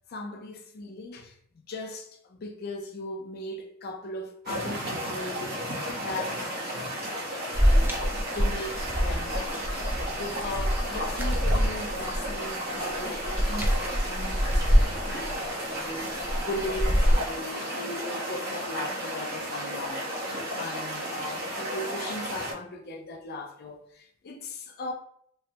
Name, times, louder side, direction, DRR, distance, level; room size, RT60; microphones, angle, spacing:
voice 1, 0.1-9.6 9.9-24.9, left 2 dB, 50° left, 0.5 m, -38 dB
sound 1, 4.5-22.5, equal, 50° right, 0.9 m, -33 dB
sound 2, 7.5-17.1, equal, 10° right, 0.3 m, -26 dB
3.1 x 2.1 x 2.7 m
head